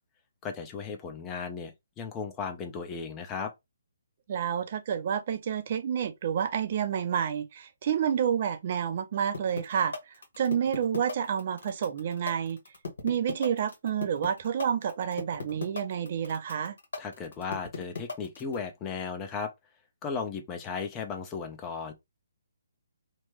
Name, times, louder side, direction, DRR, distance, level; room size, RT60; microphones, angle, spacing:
voice 1, 0.4-3.5 17.0-19.5 20.0-21.9, left 5 dB, 20° left, 0.6 m, -36 dB
voice 2, 4.3-9.9 10.4-12.6 13.0-16.7, right 8 dB, 45° right, 0.5 m, -29 dB
sound 1, 9.3-18.6, left 4 dB, 70° left, 1.2 m, -36 dB
3.1 x 2.2 x 3.1 m
hypercardioid pair, 150°, 0 cm